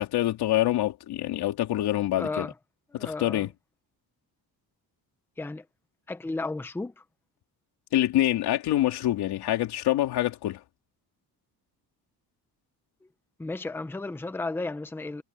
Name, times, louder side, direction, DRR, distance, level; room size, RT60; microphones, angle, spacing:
voice 1, 0.0-2.5 2.9-3.5 7.9-10.6, left 14 dB, 90° left, 3.3 m, -26 dB
voice 2, 2.2-2.5 2.9-3.5 5.4-5.6 6.1-7.0 13.4-15.2, left 3 dB, 5° left, 0.7 m, -33 dB
cardioid pair, 180°, 37 cm